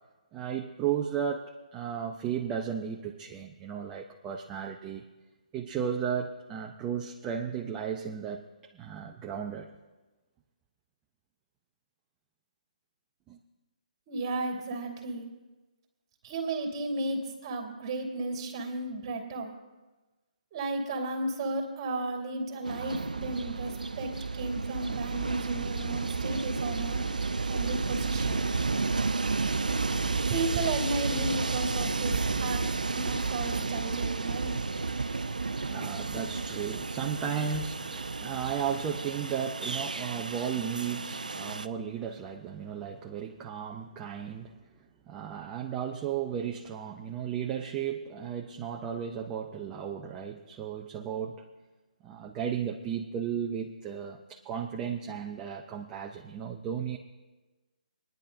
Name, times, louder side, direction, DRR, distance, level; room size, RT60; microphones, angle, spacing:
voice 1, 0.3-5.0 5.5-8.5 8.7-9.7 13.3-13.4 35.6-44.5 45.1-51.5 52.0-57.0, right 8 dB, 20° right, 1 dB, 0.6 m, -34 dB
voice 2, 14.1-15.3 16.2-19.5 20.5-27.0 27.4-28.4 30.3-34.6, right 2 dB, 35° right, 1 dB, 2.5 m, -34 dB
Train, 22.6-41.7, right 4 dB, 85° right, 0.5 m, -32 dB
27.0 x 10.5 x 2.7 m, 1.2 s
figure-of-eight pair, 140°, 4 cm